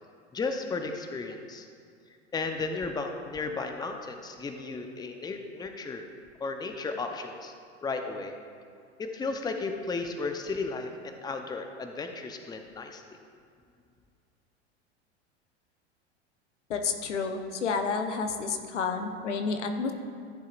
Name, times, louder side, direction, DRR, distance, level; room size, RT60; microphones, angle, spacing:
voice 1, 0.3-1.7 2.3-6.0 6.4-7.5 7.8-8.4 9.0-13.0, left 3 dB, 10° left, 5 dB, 0.7 m, -34 dB
voice 2, 16.7-19.9, left 5 dB, 85° left, 6 dB, 1.0 m, -30 dB
14.0 x 7.5 x 2.5 m, 2.3 s
hypercardioid pair, 95°, 35 cm